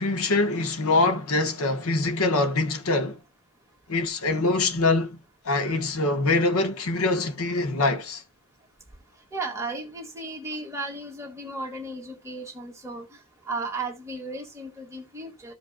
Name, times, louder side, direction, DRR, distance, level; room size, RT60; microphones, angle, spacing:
voice 1, 0.0-3.2 3.9-5.2 5.4-8.2, left 2 dB, 80° left, 1.2 m, -24 dB
voice 2, 9.3-13.1 13.5-15.5, right 2 dB, 15° right, 1.8 m, -35 dB
14.5 x 5.1 x 2.2 m
head